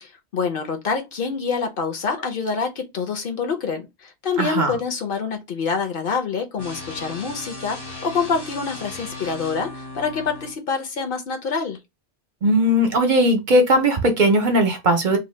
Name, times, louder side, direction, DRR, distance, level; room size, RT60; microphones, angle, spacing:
voice 1, 0.0-11.8, left 5 dB, 60° left, 0.8 m, -26 dB
voice 2, 4.4-4.8 12.4-15.2, right 1 dB, 50° right, 0.8 m, -18 dB
sound 1, 6.6-10.6, left 2 dB, 30° left, 0.6 m, -36 dB
2.7 x 2.2 x 3.1 m
omnidirectional pair, 1.1 m